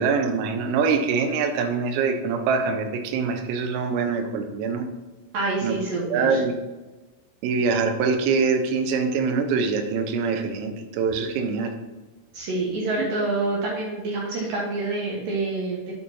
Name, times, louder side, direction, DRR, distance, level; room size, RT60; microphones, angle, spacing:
voice 1, 0.0-4.9 5.6-5.8 6.0-6.6 7.4-11.7 13.0-13.1, right 5 dB, 85° right, 5 dB, 3.5 m, -24 dB
voice 2, 5.3-6.4 12.3-15.9, right 2 dB, 70° right, -3 dB, 2.2 m, -27 dB
9.1 x 7.8 x 2.8 m, 1.2 s
omnidirectional pair, 5.9 m